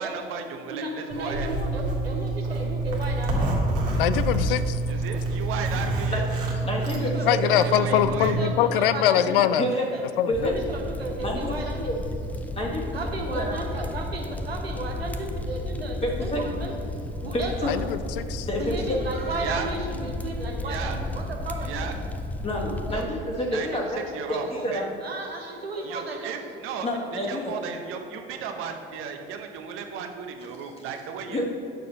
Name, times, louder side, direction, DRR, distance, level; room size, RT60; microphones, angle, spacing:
voice 1, 0.0-1.5 4.9-6.3 7.7-8.4 14.8-14.9 19.4-19.7 20.6-21.0 21.7-21.9 22.9-23.0 23.5-23.7 24.1-24.9 25.8-26.9 27.3-31.4, right 7 dB, 45° right, 5 dB, 0.8 m, -35 dB
voice 2, 0.7-3.4 3.9-4.0 4.6-5.0 6.8-12.1 12.9-17.9 18.5-21.9 22.9-24.1 24.4-24.7 25.0-26.5, right 2 dB, 85° right, 2 dB, 1.0 m, -35 dB
Zipper (clothing), 1.1-8.4, right 2 dB, 65° right, 1.7 m, -27 dB
voice 3, 4.0-4.8 7.3-9.6 10.2-10.5 17.7-18.5, left 11 dB, 65° left, 14 dB, 0.5 m, -23 dB
voice 4, 6.5-7.5 9.5-9.9 10.3-10.5 11.2-11.5 11.8-11.9 12.5-12.9 13.3-13.5 16.0-16.4 17.3-17.7 18.4-19.0 22.4-24.0 24.3-24.8 26.8-27.5 30.6-30.7 31.3-31.4, left 1 dB, 20° left, -2 dB, 1.5 m, -29 dB
sound 1, 10.3-23.0, left 1 dB, 5° left, 0.6 m, -33 dB
9.1 x 6.7 x 3.9 m, 2.9 s
figure-of-eight pair, 65°, 29 cm